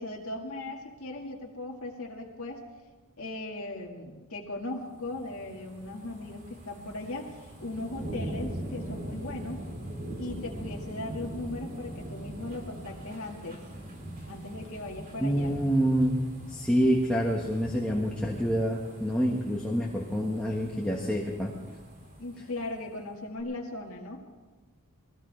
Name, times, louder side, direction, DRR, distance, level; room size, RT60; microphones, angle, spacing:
voice 1, 0.0-2.7 3.2-9.6 10.2-13.6 14.3-15.5 22.2-24.2, left 2 dB, 70° left, -1 dB, 1.9 m, -38 dB
sound 1, 4.8-23.0 23.4-23.5, right 1 dB, 40° right, 2.7 m, -42 dB
voice 2, 15.2-16.2 16.5-21.5, equal, 5° left, -3 dB, 1.5 m, -27 dB
22.0 x 16.5 x 3.4 m, 1.3 s
head